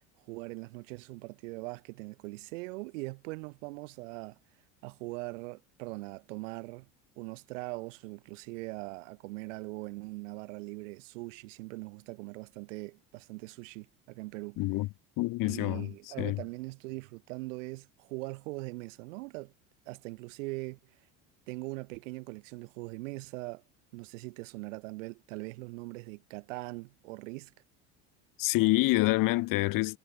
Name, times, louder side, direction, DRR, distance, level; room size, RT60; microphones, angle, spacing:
voice 1, 0.3-4.4 4.8-6.9 7.2-14.6 15.4-19.5 19.9-20.8 21.5-23.6 23.9-27.5, right 24 dB, 85° right, 1.2 m, -41 dB
voice 2, 14.6-14.9 15.2-15.9 16.2-16.4 28.4-30.0, left 21 dB, 60° left, 1.0 m, -27 dB
supercardioid pair, 95°, 37 cm